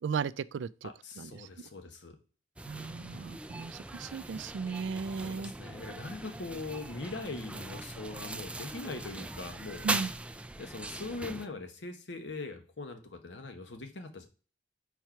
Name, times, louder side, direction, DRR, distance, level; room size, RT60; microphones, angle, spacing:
voice 1, 0.0-0.9 1.2-1.5 2.7-5.5 9.8-10.1, right 6 dB, 85° right, 0.4 m, -36 dB
voice 2, 0.8-2.2 5.2-9.9 10.6-14.3, left 3 dB, 75° left, 1.1 m, -41 dB
sound 1, 2.6-11.5, right 2 dB, 5° right, 0.3 m, -40 dB
4.6 x 4.6 x 5.7 m
head